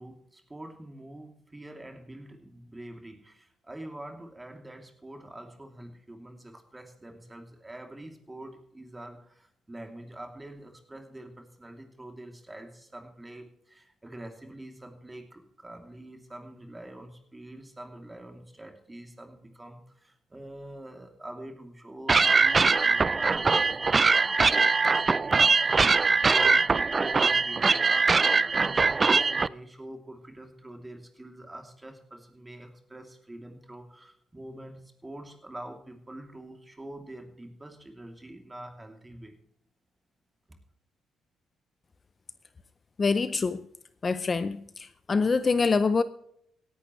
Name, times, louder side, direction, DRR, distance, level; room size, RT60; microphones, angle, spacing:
voice 1, 0.0-26.6 26.9-39.4 40.5-40.6, right 1 dB, 15° right, 2.8 m, -45 dB
sound 1, 22.1-29.5, right 4 dB, 30° right, 0.4 m, -22 dB
voice 2, 43.0-43.6 44.0-46.0, left 4 dB, 35° left, 0.6 m, -25 dB
17.0 x 11.0 x 3.2 m
cardioid pair, 90°, 0 cm